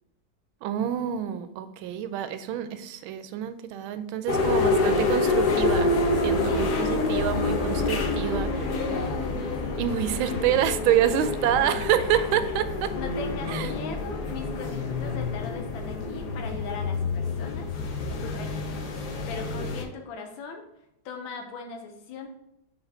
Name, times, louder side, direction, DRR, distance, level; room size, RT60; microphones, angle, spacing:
voice 1, 0.6-5.9 6.2-8.6 9.8-12.9 13.5-13.7, right 10 dB, 85° right, 11 dB, 1.4 m, -27 dB
sound 1, 4.3-19.8, left 3 dB, 60° left, 1.3 m, -27 dB
voice 2, 12.9-17.7 18.2-18.8 19.3-20.6 21.0-22.3, left 5 dB, 80° left, 3 dB, 1.6 m, -39 dB
5.7 x 3.9 x 5.5 m, 0.83 s
omnidirectional pair, 2.2 m